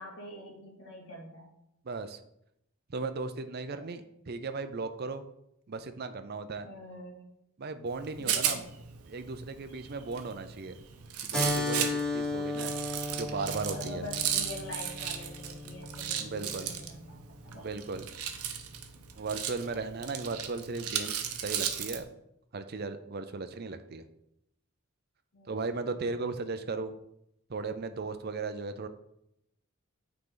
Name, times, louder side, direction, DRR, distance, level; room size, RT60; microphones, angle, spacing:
voice 1, 0.0-1.5 3.8-3.9 6.6-7.3 8.2-8.7 13.7-17.8 18.5-18.6 25.3-25.9, left 1 dB, 60° left, -1 dB, 2.0 m, -45 dB
voice 2, 1.8-2.2 2.9-5.3 5.7-6.7 7.6-8.6 9.1-10.7 11.2-12.7 13.1-14.0 16.2-16.7 17.5-18.1 19.2-22.1 22.5-24.0 25.5-26.9 27.5-28.9, right 3 dB, 45° right, 10 dB, 0.5 m, -36 dB
Rattle, 7.9-22.0, right 9 dB, 85° right, 0.8 m, -36 dB
Keyboard (musical), 11.3-16.5, left 2 dB, 5° left, 1.5 m, -35 dB
8.8 x 3.9 x 3.8 m, 0.79 s
head